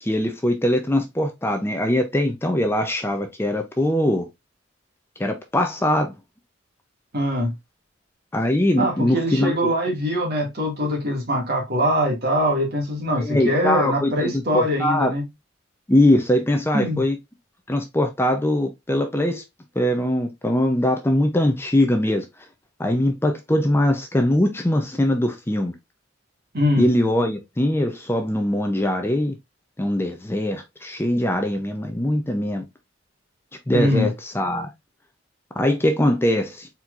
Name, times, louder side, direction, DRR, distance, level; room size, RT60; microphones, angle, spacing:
voice 1, 0.0-4.3 5.2-6.1 8.3-9.6 13.2-15.1 15.9-17.2 17.7-19.4 19.8-22.3 22.8-25.7 26.8-29.3 29.8-32.6 33.7-34.7 35.6-36.7, left 1 dB, 10° left, 0.6 m, -21 dB
voice 2, 7.1-7.5 8.8-15.2 16.7-17.0 26.5-26.9 33.7-34.1, equal, 55° right, 2.1 m, -23 dB
4.4 x 4.3 x 2.5 m
head